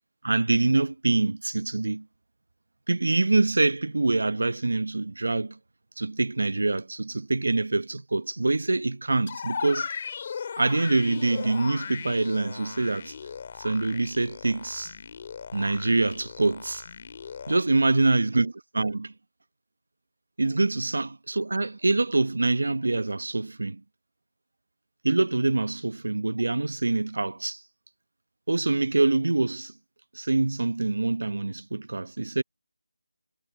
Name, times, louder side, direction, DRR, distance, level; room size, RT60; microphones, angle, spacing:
voice 1, 0.2-2.1 2.9-5.6 6.0-9.9 10.6-13.1 13.6-14.9 15.5-16.8 17.5-19.1 20.4-23.8 25.0-27.6 28.5-29.7 30.1-32.4, right 2 dB, 60° right, 0.8 m, -25 dB
sound 1, 9.3-17.6, left 6 dB, 25° left, 1.9 m, -38 dB
figure-of-eight pair, 180°, 0 cm